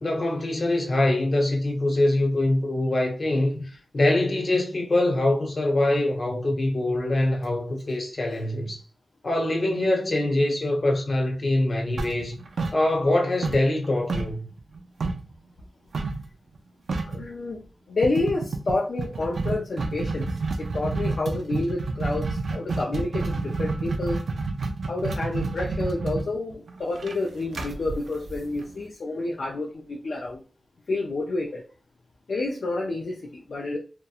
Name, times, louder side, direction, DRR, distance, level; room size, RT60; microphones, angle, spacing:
voice 1, 0.0-8.8 9.2-12.4 12.7-14.5, left 1 dB, 50° left, 0.9 m, -24 dB
sound 1, 12.0-13.2 13.4-15.3 15.9-16.3 16.6-16.7 16.9-17.3 18.0-28.8, right 3 dB, 80° right, 0.4 m, -29 dB
voice 2, 17.0-17.6 17.9-20.3 20.6-24.2 24.9-30.4 30.9-31.6 32.3-33.8, left 2 dB, 70° left, 0.4 m, -29 dB
2.9 x 2.1 x 2.3 m
wide cardioid pair, 85°, 0 cm